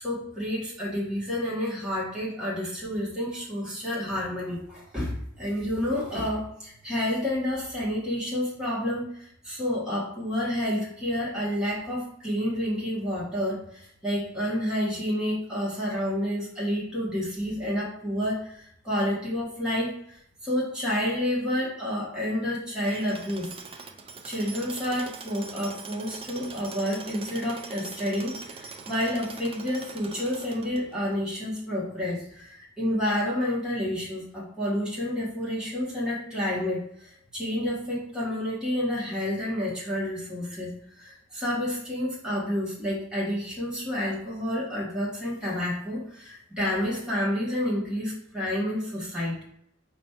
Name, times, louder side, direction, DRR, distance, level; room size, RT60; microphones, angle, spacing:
voice 1, 0.0-23.5 24.2-49.4, left 1 dB, 5° right, -7 dB, 1.1 m, -29 dB
Tools, 22.8-31.1, right 4 dB, 30° right, 0.4 m, -42 dB
5.0 x 2.2 x 4.2 m, 0.70 s
head